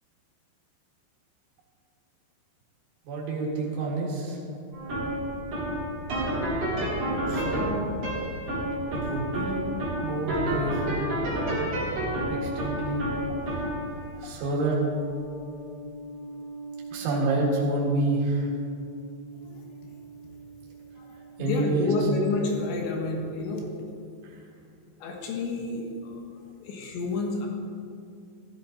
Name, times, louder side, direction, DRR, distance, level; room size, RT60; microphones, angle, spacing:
voice 1, 3.1-4.4 7.3-7.7 8.9-9.6 10.0-11.1 12.3-13.0 14.2-14.8 16.9-18.5 21.4-21.9 24.2-24.4, right 2 dB, 80° right, -4 dB, 4.4 m, -28 dB
sound 1, 4.7-21.9, right 1 dB, 35° right, 4.1 m, -32 dB
voice 2, 20.9-23.7 25.0-26.2 26.6-27.5, left 3 dB, 75° left, 1 dB, 3.6 m, -30 dB
15.0 x 13.5 x 3.9 m, 2.4 s
omnidirectional pair, 5.3 m